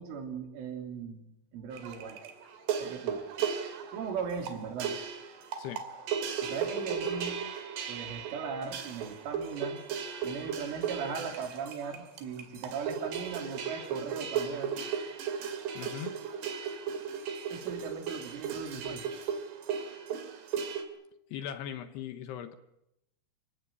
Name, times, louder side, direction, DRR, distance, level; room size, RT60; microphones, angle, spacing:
voice 1, 0.0-2.2 2.8-3.3 3.9-5.0 6.4-7.4 7.9-9.8 10.2-14.8 17.5-19.0, right 6 dB, 80° right, 4 dB, 5.6 m, -38 dB
sound 1, 1.7-20.8, right 7 dB, 60° right, 4.1 m, -36 dB
voice 2, 15.7-16.2 21.3-22.5, left 10 dB, 75° left, 10 dB, 2.8 m, -39 dB
27.0 x 16.0 x 9.8 m, 0.85 s
omnidirectional pair, 5.6 m